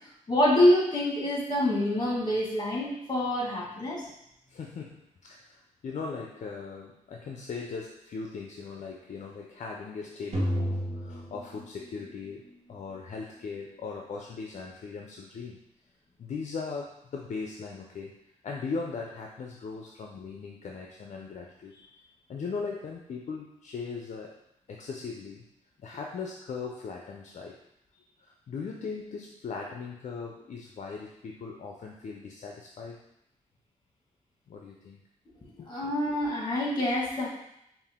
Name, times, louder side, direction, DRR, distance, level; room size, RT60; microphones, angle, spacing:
voice 1, 0.3-4.1 35.7-37.3, left 1 dB, 35° left, -4 dB, 1.7 m, -26 dB
voice 2, 4.5-15.6 16.2-18.1 18.4-21.7 22.3-24.4 24.7-25.5 25.8-27.6 27.9-33.0 34.5-35.0 35.5-35.8, left 4 dB, 60° left, 0 dB, 0.5 m, -39 dB
sound 1, 10.3-12.5, equal, 50° right, 1.1 m, -32 dB
5.4 x 2.5 x 3.6 m, 0.79 s
cardioid pair, 80°, 14 cm